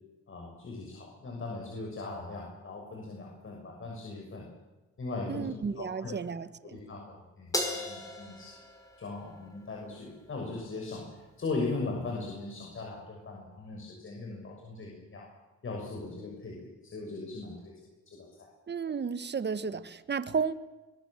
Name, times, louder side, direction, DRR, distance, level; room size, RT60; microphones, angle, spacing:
voice 1, 0.3-4.5 5.0-5.5 5.8-6.1 6.6-7.5 7.9-8.6 9.0-11.1 11.4-15.3 15.6-16.6 16.8-17.7 18.1-18.3, left 3 dB, 45° left, 0 dB, 6.5 m, -38 dB
voice 2, 5.3-6.8 18.7-20.5, right 6 dB, 35° right, 14 dB, 1.4 m, -33 dB
Crash cymbal, 7.5-10.1, left 1 dB, 10° left, 5.7 m, -37 dB
23.5 x 20.5 x 7.5 m, 1.1 s
cardioid pair, 90°, 30 cm